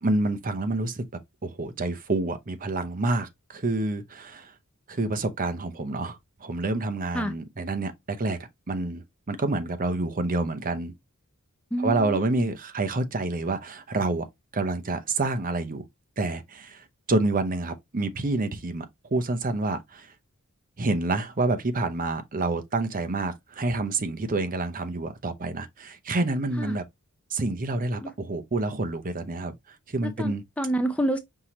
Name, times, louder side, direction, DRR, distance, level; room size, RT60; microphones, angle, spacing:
voice 1, 0.0-1.0 1.4-4.5 4.9-8.4 8.7-10.9 11.8-14.3 14.5-15.9 16.2-18.9 19.1-20.1 20.8-26.8 27.3-29.5 29.9-30.4, right 2 dB, 40° right, 0.7 m, -28 dB
voice 2, 11.7-12.2 26.6-26.8 28.0-28.1 30.2-31.2, right 1 dB, 5° left, 0.4 m, -28 dB
5.6 x 2.9 x 3.1 m
head